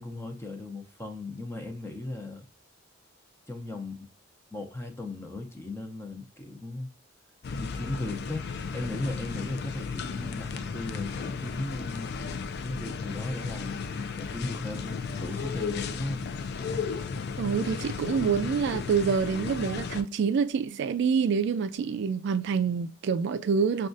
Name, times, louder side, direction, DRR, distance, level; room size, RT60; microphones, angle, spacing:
voice 1, 0.0-2.4 3.5-4.0 4.5-6.9 7.6-8.5 8.7-12.1 12.6-13.8 14.2-16.3, left 2 dB, 15° left, 0.6 m, -36 dB
sound 1, 7.4-20.0, left 5 dB, 55° left, 0.4 m, -34 dB
voice 2, 17.4-23.9, right 6 dB, 60° right, 0.3 m, -27 dB
6.1 x 2.3 x 2.5 m
head